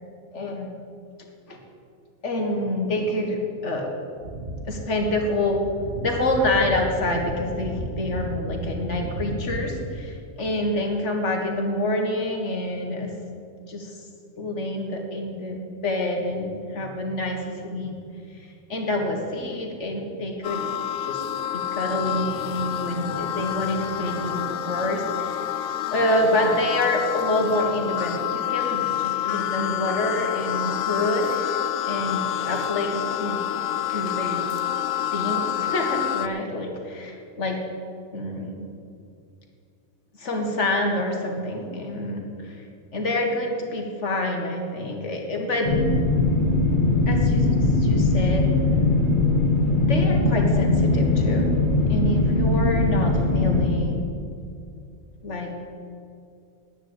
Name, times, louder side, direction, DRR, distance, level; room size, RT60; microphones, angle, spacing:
voice 1, 0.3-0.8 1.5-1.6 2.2-3.9 4.7-5.6 6.0-13.2 13.7-14.0 14.4-17.9 18.7-20.6 21.0-21.3 21.5-25.7 25.9-33.4 33.9-34.4 35.1-37.6 38.1-38.6 40.2-42.6 42.9-45.7 46.4-46.5 47.1-48.5 49.9-51.5 51.9-54.0 55.2-55.5, left 1 dB, 60° left, 2 dB, 2.0 m, -27 dB
sound 1, 4.2-10.2, right 1 dB, 40° right, 1.6 m, -33 dB
sound 2, 20.4-36.3, left 12 dB, 80° left, 1.0 m, -28 dB
sound 3, 45.7-53.7, left 2 dB, 35° left, 1.7 m, -20 dB
10.0 x 9.7 x 8.0 m, 2.4 s
omnidirectional pair, 1.4 m